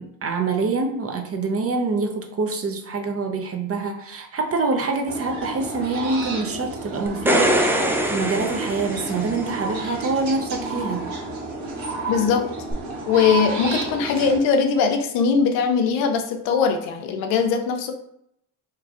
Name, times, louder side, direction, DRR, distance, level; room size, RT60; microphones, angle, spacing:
voice 1, 0.0-11.1, right 3 dB, 30° right, 3 dB, 0.7 m, -26 dB
sound 1, 5.1-14.4, right 3 dB, 85° right, 1.0 m, -31 dB
sound 2, 7.1-9.6 12.7-12.8, equal, 5° right, 0.3 m, -23 dB
voice 2, 12.1-12.4 13.1-17.9, left 6 dB, 75° left, 5 dB, 0.7 m, -20 dB
3.1 x 2.3 x 3.6 m, 0.73 s
supercardioid pair, 70°, 44 cm